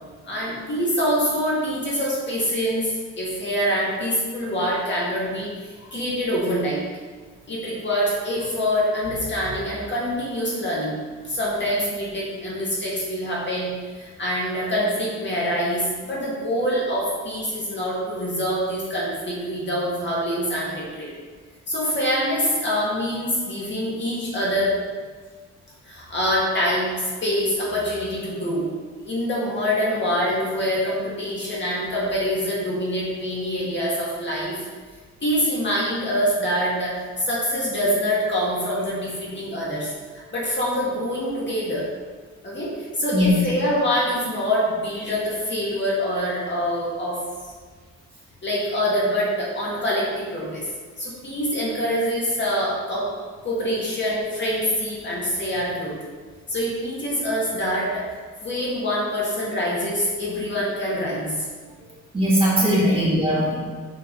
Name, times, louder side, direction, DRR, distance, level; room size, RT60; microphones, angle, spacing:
voice 1, 0.3-6.9 7.5-11.0 11.2-21.1 21.7-24.8 25.8-28.7 29.0-34.6 35.2-39.9 40.3-41.8 42.4-47.5 48.4-50.7 51.0-53.1 53.4-56.0 56.5-58.1 58.4-61.5 62.8-63.0, equal, 40° left, -6 dB, 2.0 m, -25 dB
voice 2, 62.1-63.6, equal, 20° right, -8 dB, 2.2 m, -19 dB
6.8 x 6.6 x 4.0 m, 1.5 s
wide cardioid pair, 175°, 29 cm